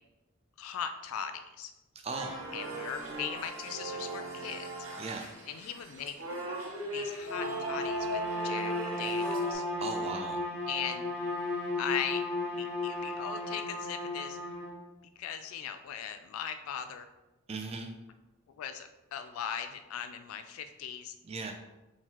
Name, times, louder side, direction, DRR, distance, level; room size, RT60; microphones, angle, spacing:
voice 1, 0.6-1.7 2.5-4.7 5.5-6.1 6.9-9.6 10.7-11.0 11.8-12.3 12.6-14.4 15.2-17.1 18.6-21.1, left 8 dB, 80° left, 8 dB, 0.3 m, -39 dB
voice 2, 2.0-2.4 5.0-5.2 9.8-10.4 17.5-17.9 21.2-21.5, right 4 dB, 30° right, 4 dB, 0.4 m, -37 dB
sound 1, 2.1-9.5, right 1 dB, 85° right, 1.0 m, -39 dB
Bowed string instrument, 7.2-14.8, left 2 dB, 45° right, 1.0 m, -34 dB
4.4 x 3.7 x 2.9 m, 1.0 s
head